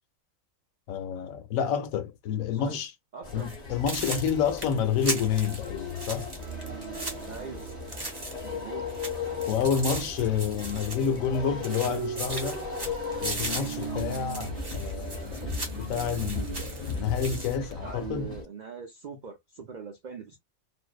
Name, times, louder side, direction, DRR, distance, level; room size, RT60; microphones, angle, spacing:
voice 1, 0.9-2.9 3.3-6.3 9.5-12.6 13.2-18.3, left 7 dB, 75° left, 1.0 m, -29 dB
voice 2, 2.5-2.8 3.1-3.5 7.2-7.7 8.4-8.9 17.8-20.4, right 6 dB, 80° right, 0.4 m, -41 dB
sound 1, 3.2-18.4, left 4 dB, 40° left, 0.6 m, -38 dB
sound 2, 3.4-3.6 3.9-8.6 8.9-11.4 11.6-17.6, right 2 dB, 25° right, 0.5 m, -38 dB
sound 3, 6.4-17.9, right 8 dB, 60° right, 0.8 m, -41 dB
2.6 x 2.1 x 2.3 m
omnidirectional pair, 1.5 m